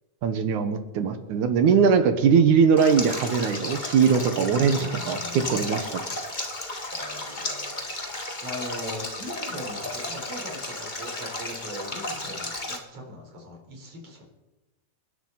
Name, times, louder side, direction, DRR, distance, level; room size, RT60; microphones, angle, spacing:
voice 1, 0.2-6.0, right 6 dB, 65° right, 8 dB, 2.4 m, -21 dB
Stream, 2.8-12.8, left 2 dB, 35° left, 0.7 m, -34 dB
voice 2, 4.7-5.9 6.9-8.0 8.4-14.2, equal, 45° right, 0 dB, 4.8 m, -40 dB
28.0 x 11.0 x 4.0 m, 1.1 s
omnidirectional pair, 4.0 m